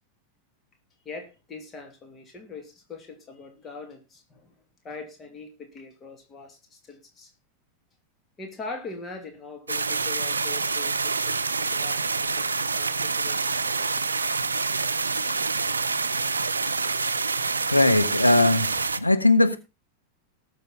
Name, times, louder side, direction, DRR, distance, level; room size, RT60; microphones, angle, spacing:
voice 1, 1.0-4.5 4.8-7.3 8.4-14.3, left 4 dB, 20° left, 2.6 m, -42 dB
sound 1, 9.7-19.0, right 4 dB, 75° right, 0.7 m, -27 dB
voice 2, 17.7-19.6, left 2 dB, 85° left, 1.3 m, -20 dB
19.0 x 6.7 x 3.8 m
figure-of-eight pair, 90°, 0 cm